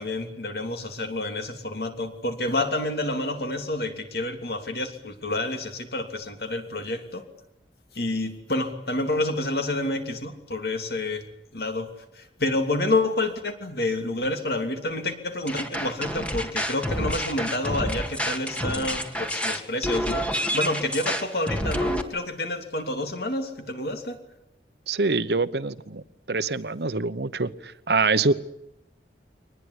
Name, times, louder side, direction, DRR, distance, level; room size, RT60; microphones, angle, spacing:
voice 1, 0.0-7.2 7.9-11.3 11.5-24.2, left 2 dB, 60° left, 6 dB, 3.0 m, -29 dB
sound 1, 15.5-22.0, equal, 5° left, 1.8 m, -28 dB
voice 2, 24.9-26.0 26.3-28.3, right 3 dB, 70° right, 14 dB, 1.0 m, -25 dB
23.5 x 20.0 x 9.9 m, 0.85 s
head